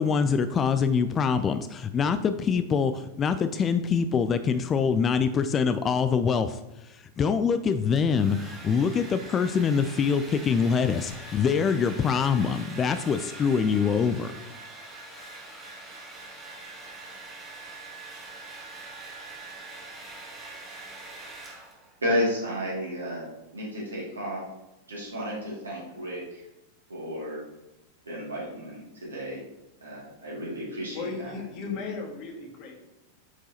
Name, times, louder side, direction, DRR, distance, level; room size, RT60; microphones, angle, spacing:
voice 1, 0.0-6.6 6.9-14.3, left 6 dB, 25° left, 10 dB, 0.3 m, -24 dB
Domestic sounds home sounds, 7.7-22.0, right 2 dB, 15° right, 1.5 m, -43 dB
voice 2, 22.0-24.4 24.9-26.4 26.9-27.4 28.1-29.4 29.8-31.3, equal, 75° right, -5 dB, 2.4 m, -32 dB
voice 3, 30.9-32.9, left 4 dB, 45° left, 1 dB, 1.5 m, -36 dB
8.7 x 4.6 x 2.9 m, 0.95 s
figure-of-eight pair, 90°, 0 cm